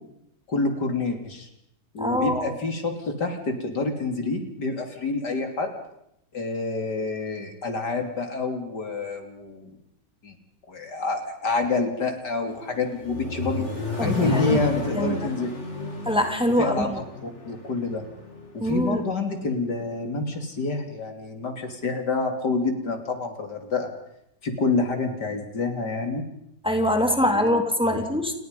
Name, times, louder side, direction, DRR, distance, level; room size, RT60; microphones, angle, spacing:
voice 1, 0.5-1.5 1.9-5.7 6.3-9.7 10.2-10.4 10.7-13.7 14.0-15.5 16.6-18.0 18.5-23.9 24.4-26.2 27.2-27.5, left 3 dB, 90° left, 5 dB, 3.8 m, -28 dB
voice 2, 2.0-2.6 14.0-14.6 14.9-15.2 16.1-17.0 18.6-19.0 26.6-28.3, equal, 5° right, 4 dB, 2.8 m, -24 dB
Accelerating revving vroom, 12.5-18.5, left 3 dB, 45° left, 3.6 m, -32 dB
28.5 x 21.5 x 5.5 m, 0.79 s
omnidirectional pair, 1.8 m